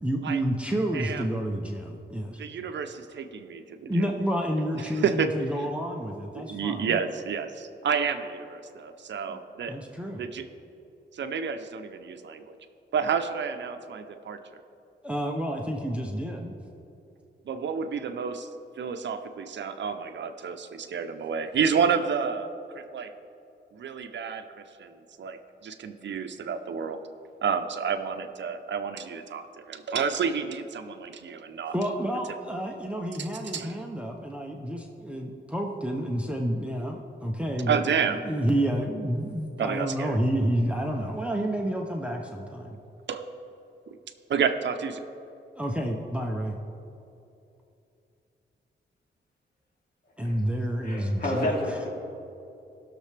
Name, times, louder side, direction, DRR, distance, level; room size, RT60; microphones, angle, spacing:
voice 1, 0.0-2.4 3.8-7.0 9.3-9.4 9.7-10.2 15.0-16.6 31.7-42.8 45.6-46.6 50.2-51.5, right 1 dB, 5° right, 1 dB, 0.6 m, -29 dB
voice 2, 0.9-1.2 2.4-4.1 4.8-5.3 6.4-9.8 10.1-10.5 11.1-12.6 12.9-14.6 17.4-18.5 18.8-23.1 23.7-27.0 27.4-31.8 33.2-33.3 33.5-33.8 37.7-38.2 39.6-40.2 43.1-43.3 43.9-44.0 44.3-45.0, right 6 dB, 65° right, 8 dB, 0.6 m, -30 dB
voice 3, 50.8-51.9, left 1 dB, 50° left, -4 dB, 2.5 m, -29 dB
19.0 x 6.6 x 3.3 m, 2.7 s
wide cardioid pair, 150°, 20 cm